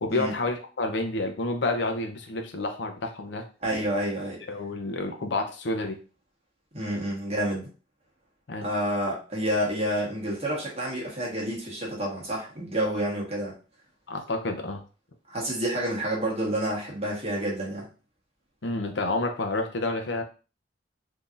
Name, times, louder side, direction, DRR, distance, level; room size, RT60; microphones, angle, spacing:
voice 1, 0.0-3.4 4.5-6.0 8.5-8.7 14.1-14.8 18.6-20.2, left 2 dB, 75° left, 4 dB, 0.6 m, -29 dB
voice 2, 3.6-4.4 6.7-7.7 8.6-13.5 15.3-17.9, right 1 dB, 35° right, -3 dB, 1.3 m, -29 dB
3.7 x 2.8 x 2.5 m, 0.35 s
head